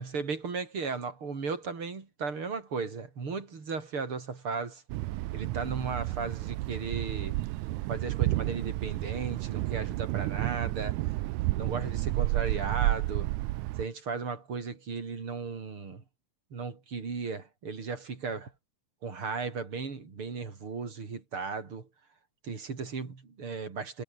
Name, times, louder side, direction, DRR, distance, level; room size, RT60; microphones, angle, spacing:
voice 1, 0.0-4.8 5.3-7.4 7.9-11.0 11.5-13.3 13.8-16.0 16.5-18.5 19.0-21.9 22.4-24.0, right 4 dB, 40° right, 4.3 m, -36 dB
Thunder, 4.9-13.9, right 19 dB, 75° right, 1.9 m, -31 dB
omnidirectional pair, 3.7 m